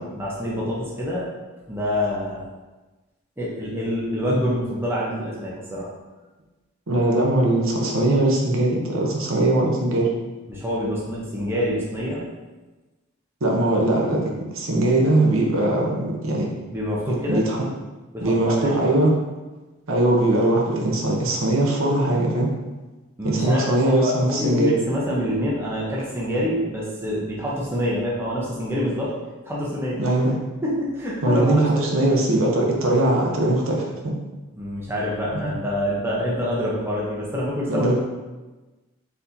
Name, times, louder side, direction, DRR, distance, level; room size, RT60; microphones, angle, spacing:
voice 1, 0.1-1.2 1.7-2.4 3.4-5.9 10.5-12.2 16.7-17.4 18.1-18.7 23.2-29.1 29.4-30.0 30.6-32.1 34.5-38.0, equal, 10° right, -6 dB, 0.7 m, -26 dB
voice 2, 6.9-10.1 13.4-16.5 17.1-17.6 18.2-19.1 19.9-22.5 23.2-24.7 30.0-30.3 31.2-34.2 35.3-35.5 37.7-38.0, right 1 dB, 65° right, -1 dB, 0.8 m, -21 dB
4.2 x 4.2 x 2.7 m, 1.2 s
head